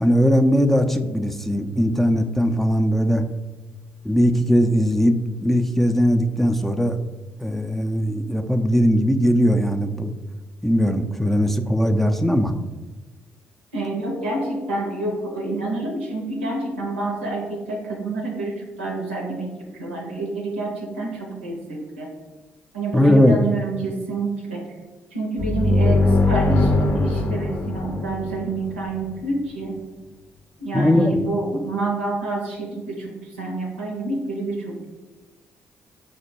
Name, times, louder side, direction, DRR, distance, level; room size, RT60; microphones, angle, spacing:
voice 1, 0.0-3.2 4.0-5.1 5.4-7.0 7.4-10.1 10.6-12.5 22.9-23.4 30.7-31.3, equal, 5° left, 6 dB, 0.4 m, -19 dB
voice 2, 13.7-19.5 19.8-22.1 22.7-24.7 25.1-29.8 30.6-34.9, right 2 dB, 90° right, 0 dB, 0.6 m, -28 dB
sound 1, 25.4-29.0, left 2 dB, 50° left, 0.6 m, -21 dB
5.0 x 2.2 x 4.4 m, 1.2 s
hypercardioid pair, 40°, 6 cm